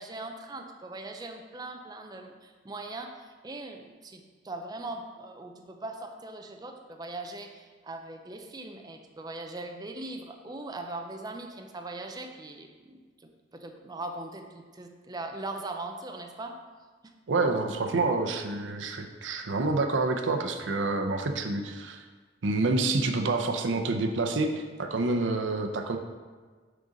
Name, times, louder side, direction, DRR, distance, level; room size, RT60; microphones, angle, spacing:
voice 1, 0.0-16.5, right 2 dB, 20° right, 3 dB, 0.5 m, -40 dB
voice 2, 17.3-22.0 22.4-26.0, right 3 dB, 90° right, 5 dB, 0.6 m, -28 dB
6.6 x 3.8 x 5.0 m, 1.5 s
head